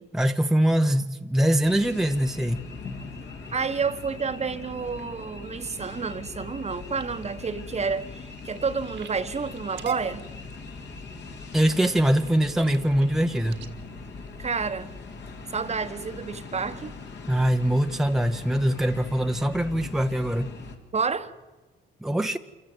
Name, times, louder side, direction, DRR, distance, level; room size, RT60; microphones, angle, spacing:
voice 1, 0.1-2.6 11.5-13.6 17.3-20.5 22.0-22.4, right 1 dB, ahead, 0.9 m, -23 dB
sound 1, 1.6-20.8, left 4 dB, 60° left, 3.0 m, -41 dB
voice 2, 3.5-10.3 14.4-14.9 15.5-17.0 20.9-21.3, right 5 dB, 35° right, 1.2 m, -30 dB
sound 2, 6.6-15.3 15.9-16.2 16.6-17.0 17.5-17.6 17.9-18.0, right 9 dB, 70° right, 1.8 m, -44 dB
27.0 x 14.5 x 8.0 m
cardioid pair, 90°, 20 cm